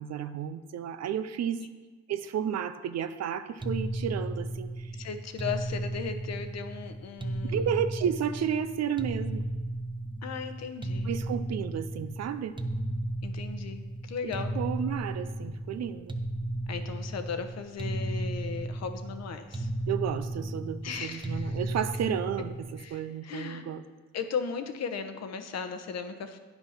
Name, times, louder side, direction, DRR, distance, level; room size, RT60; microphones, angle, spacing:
voice 1, 0.0-1.6 2.1-4.9 7.5-9.4 11.0-12.6 14.2-16.2 19.9-23.8, right 8 dB, 60° right, 12 dB, 0.6 m, -32 dB
sound 1, 3.6-22.9, right 1 dB, 15° right, 0.8 m, -34 dB
voice 2, 5.0-7.7 10.2-11.1 13.2-14.5 16.7-19.7 20.8-21.6 22.8-23.6 24.1-26.4, left 6 dB, 60° left, 8 dB, 1.0 m, -37 dB
9.7 x 6.0 x 5.7 m, 1.3 s
cardioid pair, 90°, 30 cm